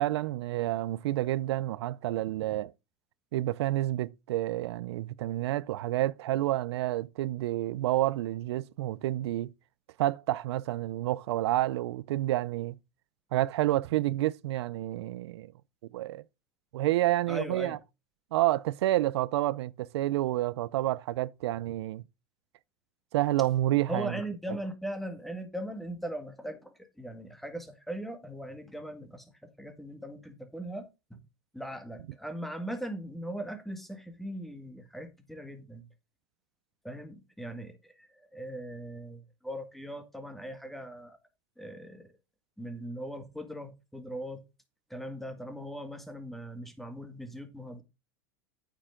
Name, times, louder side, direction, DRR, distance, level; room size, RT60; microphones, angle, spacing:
voice 1, 0.0-2.7 3.3-9.5 10.0-12.8 13.3-15.5 15.9-16.2 16.7-17.8 18.3-22.0 23.1-24.1, right 15 dB, 80° right, 0.5 m, -29 dB
voice 2, 17.3-17.8 23.9-31.2 31.5-35.9 36.8-41.2 41.6-42.1 42.6-44.4 44.9-47.8, right 1 dB, ahead, 1.8 m, -39 dB
8.9 x 7.1 x 3.8 m
supercardioid pair, 135°, 14 cm